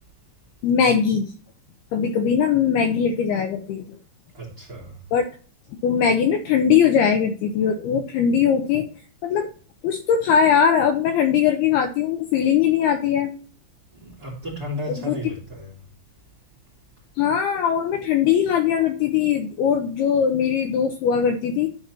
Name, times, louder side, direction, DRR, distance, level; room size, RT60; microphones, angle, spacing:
voice 1, 0.6-1.3 1.9-4.0 5.1-5.3 5.8-8.8 9.2-9.5 9.8-13.3 14.9-15.2 17.2-21.7, left 7 dB, 75° left, 2.5 m, -20 dB
voice 2, 4.3-5.0 13.9-15.8, equal, 25° right, 2.8 m, -34 dB
13.0 x 4.4 x 4.3 m
omnidirectional pair, 5.4 m